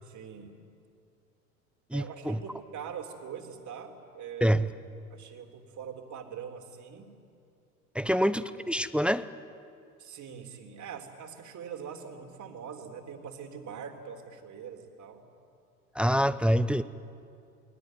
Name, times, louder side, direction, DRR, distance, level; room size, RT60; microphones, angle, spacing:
voice 1, 0.0-0.7 1.9-4.6 5.1-7.1 8.0-8.3 10.0-15.2, right 7 dB, 40° right, 4 dB, 3.5 m, -43 dB
voice 2, 1.9-2.4 4.4-4.7 7.9-9.2 15.9-16.8, equal, ahead, 13 dB, 0.8 m, -26 dB
28.0 x 21.0 x 9.4 m, 2.5 s
hypercardioid pair, 75°, 44 cm